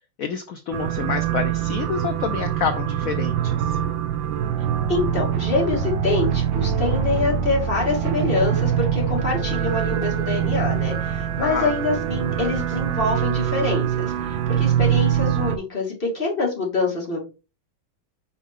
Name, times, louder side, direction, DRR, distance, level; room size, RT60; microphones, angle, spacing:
voice 1, 0.2-3.8 11.4-11.7, left 7 dB, 85° left, 8 dB, 0.7 m, -28 dB
sound 1, 0.7-15.6, right 9 dB, 75° right, 1.4 m, -24 dB
voice 2, 4.9-17.2, left 3 dB, 25° left, -3 dB, 2.3 m, -25 dB
5.5 x 4.9 x 3.5 m, 0.31 s
omnidirectional pair, 2.2 m